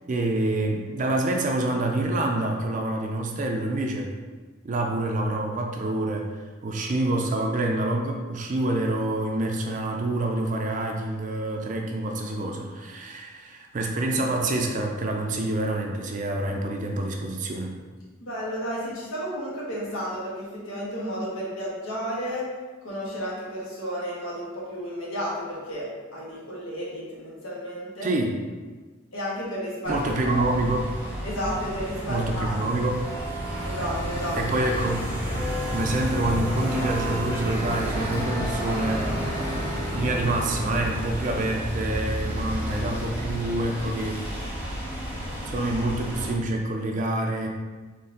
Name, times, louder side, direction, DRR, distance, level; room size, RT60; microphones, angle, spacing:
voice 1, 0.1-4.1 4.6-6.3 6.6-17.7 28.0-28.4 29.9-30.9 32.1-33.0 34.3-35.0 35.7-39.3 39.9-44.2 45.5-47.5, right 2 dB, 40° right, 1 dB, 0.4 m, -27 dB
voice 2, 18.2-22.4 22.8-28.1 29.1-30.6 31.2-32.6 33.6-34.4, equal, 85° left, -6 dB, 1.5 m, -32 dB
sound 1, 29.8-46.3, equal, 10° right, 0.8 m, -30 dB
4.2 x 3.2 x 3.8 m, 1.4 s
head